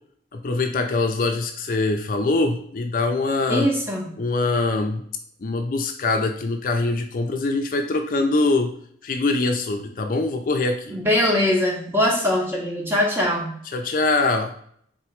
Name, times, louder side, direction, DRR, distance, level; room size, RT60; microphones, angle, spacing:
voice 1, 0.3-3.7 4.2-5.0 5.4-8.7 9.0-10.9 13.7-14.5, left 3 dB, 50° left, 5 dB, 0.4 m, -23 dB
voice 2, 3.5-4.1 10.9-13.6, left 1 dB, 10° right, -1 dB, 0.9 m, -22 dB
3.8 x 3.0 x 4.4 m, 0.64 s
head